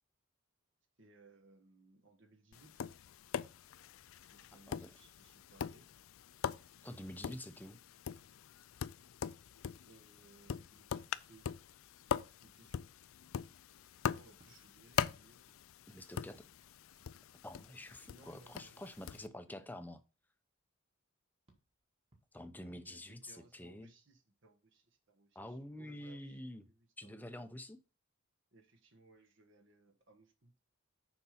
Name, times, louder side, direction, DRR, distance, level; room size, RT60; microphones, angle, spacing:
voice 1, 1.0-2.9 4.3-5.9 9.8-11.5 12.4-12.9 14.1-15.4 18.1-18.9 19.3-19.8 22.9-27.1 28.5-30.5, right 2 dB, 60° right, 1.6 m, -64 dB
Tap, 2.5-19.3, left 7 dB, 75° left, 0.4 m, -42 dB
voice 2, 6.8-7.8 15.9-16.4 17.4-20.0 22.3-23.9 25.3-26.6 27.0-27.8, left 1 dB, 10° left, 0.7 m, -48 dB
sound 1, 8.1-11.9 14.3-19.1 21.5-23.9, right 1 dB, 25° right, 1.7 m, -74 dB
6.8 x 5.2 x 5.8 m
head